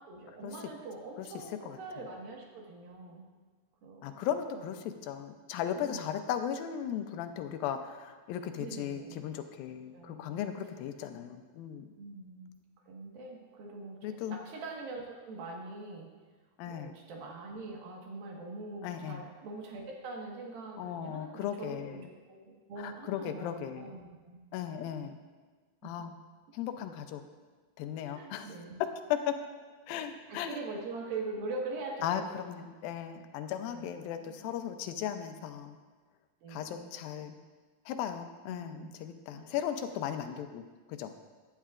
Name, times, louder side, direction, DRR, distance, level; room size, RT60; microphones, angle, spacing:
voice 1, 0.0-3.3 3.8-4.7 5.8-6.1 8.6-9.3 9.9-10.4 12.0-12.6 12.9-16.1 16.7-24.4 24.8-25.1 25.8-25.9 28.1-28.8 29.9-30.0 30.3-32.3 33.7-33.9 34.2-34.6 36.4-36.9 38.5-38.9 39.3-39.5, right 3 dB, 85° right, -1 dB, 3.4 m, -43 dB
voice 2, 4.0-11.9 14.0-14.4 16.6-16.9 18.8-19.2 20.8-22.1 22.8-23.9 24.5-25.2 25.8-26.1 26.5-27.2 27.8-28.5 29.1-29.4 29.9-30.6 32.0-35.8 36.5-37.3 37.9-41.1, left 9 dB, 85° left, 8 dB, 2.5 m, -36 dB
14.5 x 11.5 x 2.5 m, 1.4 s
omnidirectional pair, 4.1 m